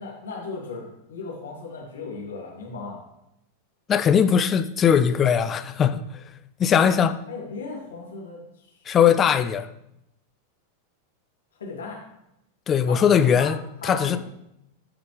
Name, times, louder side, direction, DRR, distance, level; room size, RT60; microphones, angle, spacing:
voice 1, 0.0-3.0 6.7-7.0 7.3-8.7 11.5-12.0 12.9-13.0 13.4-13.5 13.8-14.2, left 4 dB, 65° left, 2.6 m, -36 dB
voice 2, 3.9-6.2 6.6-7.1 8.9-9.7 12.7-13.6 13.8-14.2, left 8 dB, 25° left, 0.5 m, -20 dB
14.5 x 5.9 x 3.3 m
figure-of-eight pair, 90°, 0 cm